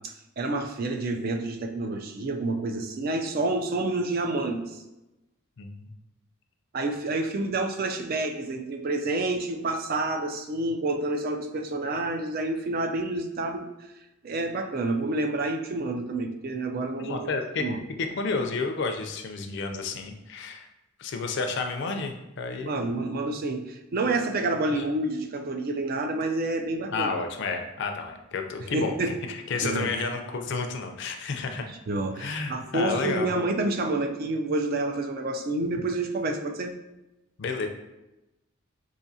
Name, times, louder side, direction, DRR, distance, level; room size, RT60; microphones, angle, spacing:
voice 1, 0.0-4.8 6.7-13.7 14.2-17.3 17.6-17.8 22.6-27.1 28.6-29.2 29.6-29.9 31.9-36.7, right 2 dB, 45° right, 5 dB, 0.4 m, -28 dB
voice 2, 5.6-5.9 17.0-17.6 18.0-20.7 21.0-23.0 24.8-24.9 26.9-28.9 29.3-31.6 32.2-33.3 37.4-37.7, left 4 dB, 55° left, 5 dB, 0.4 m, -31 dB
4.8 x 2.6 x 2.7 m, 0.96 s
head